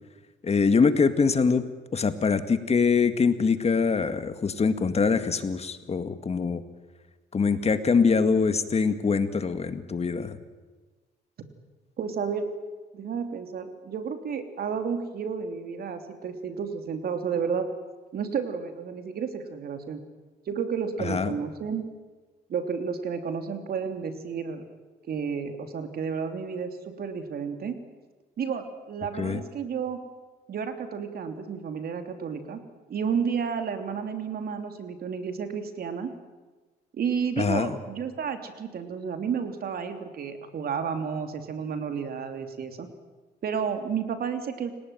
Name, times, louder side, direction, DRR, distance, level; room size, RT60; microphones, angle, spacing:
voice 1, 0.4-1.7 1.9-6.6 7.3-10.4 21.0-21.3 29.2-29.4 37.4-37.7, left 5 dB, 35° left, 10 dB, 2.0 m, -23 dB
voice 2, 12.0-12.5 12.9-17.7 18.1-20.0 20.5-21.9 22.5-24.6 25.0-27.8 28.4-30.0 30.5-32.6 32.9-36.1 36.9-42.9 43.4-44.7, right 6 dB, 60° right, 7 dB, 3.2 m, -31 dB
29.5 x 18.0 x 9.4 m, 1.3 s
cardioid pair, 85°, 18 cm